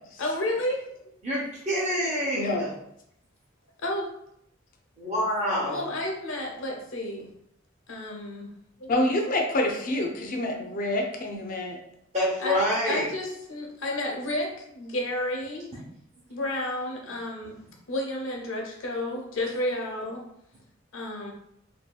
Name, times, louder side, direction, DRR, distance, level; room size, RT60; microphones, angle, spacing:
voice 1, 0.2-1.1 3.8-4.1 5.7-7.3 7.9-8.5 8.8-8.9 12.4-12.6 12.9-15.7 16.3-17.6 17.9-20.2 20.9-21.3, left 1 dB, 90° left, 0 dB, 0.7 m, -31 dB
voice 2, 1.2-2.7 5.0-5.9 12.1-13.1, equal, 35° right, -9 dB, 0.9 m, -27 dB
voice 3, 2.3-2.7 8.9-11.8, left 1 dB, 45° left, 1 dB, 0.4 m, -27 dB
2.7 x 2.7 x 2.3 m, 0.76 s
head